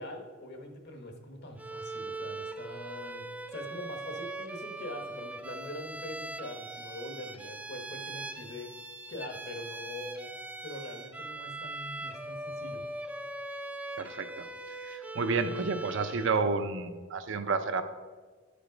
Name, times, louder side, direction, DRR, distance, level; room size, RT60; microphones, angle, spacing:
voice 1, 0.0-8.7 9.1-10.3 10.6-12.8, left 1 dB, 55° left, 5 dB, 1.2 m, -43 dB
Bowed string instrument, 1.6-16.4, right 2 dB, 5° right, 0.4 m, -41 dB
voice 2, 14.0-17.8, right 4 dB, 60° right, 9 dB, 0.5 m, -31 dB
11.0 x 5.1 x 5.1 m, 1.4 s
head